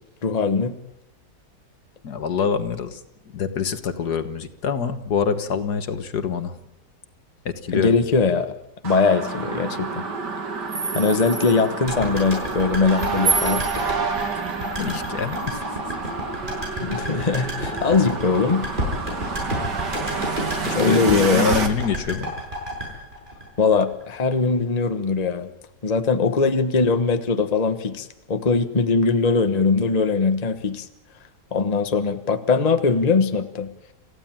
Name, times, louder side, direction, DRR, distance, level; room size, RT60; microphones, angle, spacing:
voice 1, 0.2-0.8 7.7-8.5 8.8-10.0 10.9-13.7 16.8-18.6 20.7-21.5 23.6-25.5 25.8-30.9 31.5-33.7, left 4 dB, 25° left, 8 dB, 1.2 m, -21 dB
voice 2, 2.0-3.0 3.3-6.6 7.5-7.9 14.8-15.6 20.6-22.3, left 6 dB, 65° left, 10 dB, 1.9 m, -25 dB
sound 1, 8.8-21.7, right 4 dB, 75° right, 2.7 m, -28 dB
sound 2, 11.9-24.0 24.3-24.4, equal, 25° right, 7.7 m, -30 dB
28.5 x 15.0 x 9.0 m, 0.89 s
omnidirectional pair, 1.9 m